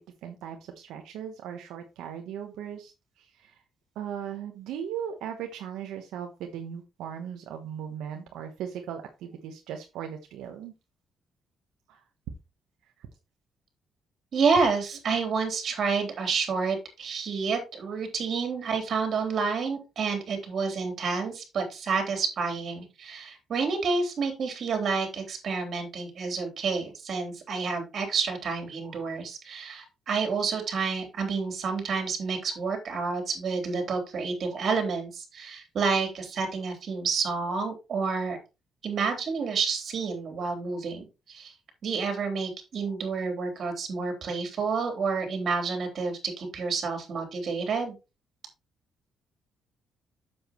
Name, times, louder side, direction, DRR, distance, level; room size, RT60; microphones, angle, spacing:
voice 1, 0.2-3.6 3.9-10.7 11.9-12.0 12.8-13.1 14.6-14.7 14.9-15.0, right 8 dB, 90° right, 4 dB, 1.1 m, -38 dB
voice 2, 14.3-38.4 38.8-41.5 41.8-47.9, right 5 dB, 55° right, 4 dB, 3.4 m, -29 dB
8.0 x 7.4 x 3.1 m, 0.27 s
cardioid pair, 90°, 0 cm